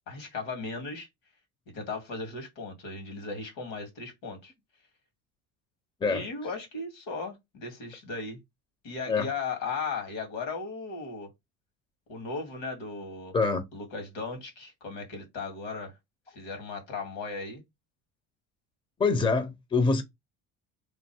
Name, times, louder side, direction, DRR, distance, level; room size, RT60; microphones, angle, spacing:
voice 1, 0.1-1.1 1.7-4.5 6.1-8.4 8.8-11.3 12.1-13.3 13.7-15.9 16.4-17.6, left 4 dB, 75° left, 1.9 m, -36 dB
voice 2, 13.3-13.6 19.0-20.0, left 4 dB, 15° left, 0.7 m, -25 dB
3.1 x 2.5 x 4.4 m
cardioid pair, 105°, 34 cm